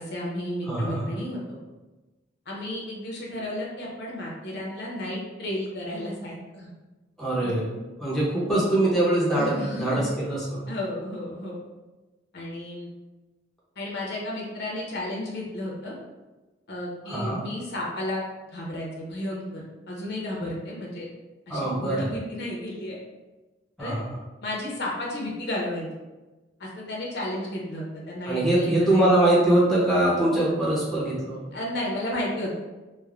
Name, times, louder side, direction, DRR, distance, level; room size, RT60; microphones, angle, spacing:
voice 1, 0.0-1.4 2.5-6.7 7.4-7.5 9.4-10.1 10.7-11.6 12.3-12.9 13.8-15.9 16.7-18.2 18.5-19.6 19.9-21.1 21.5-23.0 23.8-23.9 24.4-25.9 26.6-29.0 31.5-32.5, left 1 dB, 60° left, -3 dB, 0.7 m, -33 dB
voice 2, 0.7-1.1 7.2-7.7 8.0-10.6 17.1-17.4 21.5-22.1 23.8-24.1 28.3-31.4, right 1 dB, ahead, -7 dB, 0.6 m, -23 dB
3.1 x 2.0 x 2.4 m, 1.1 s
head